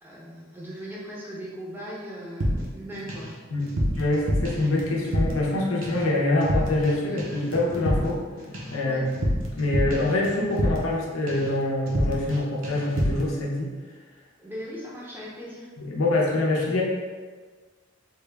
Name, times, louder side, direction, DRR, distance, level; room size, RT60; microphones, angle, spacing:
voice 1, 0.0-3.3 7.0-7.2 8.8-9.0 14.4-15.7, equal, 10° right, -6 dB, 0.6 m, -39 dB
sound 1, 2.4-3.3 3.6-5.5 5.8-6.1 6.4-6.9 7.2-11.0 11.3-11.6 11.9-12.4 12.6-13.3, equal, 70° right, 0.7 m, -28 dB
voice 2, 3.5-8.2 8.7-9.0 9.5-13.7 15.8-16.8, left 2 dB, 80° left, -3 dB, 0.7 m, -25 dB
3.3 x 2.3 x 3.3 m, 1.5 s
head